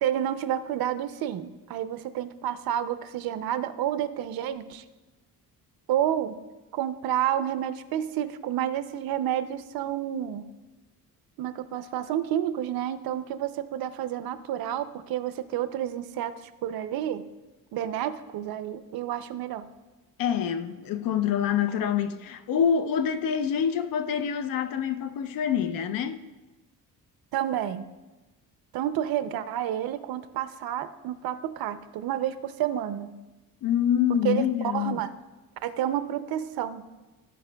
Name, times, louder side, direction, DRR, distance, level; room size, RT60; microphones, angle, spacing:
voice 1, 0.0-4.8 5.9-6.4 6.7-10.5 11.4-16.3 16.6-17.2 17.7-19.7 27.3-27.9 28.7-33.2 34.2-35.1 35.6-36.8, right 11 dB, 85° right, 0.6 m, -30 dB
voice 2, 20.2-26.2 33.6-35.0, left 8 dB, 70° left, 0.6 m, -26 dB
15.0 x 5.2 x 2.2 m
cardioid pair, 160°, 35 cm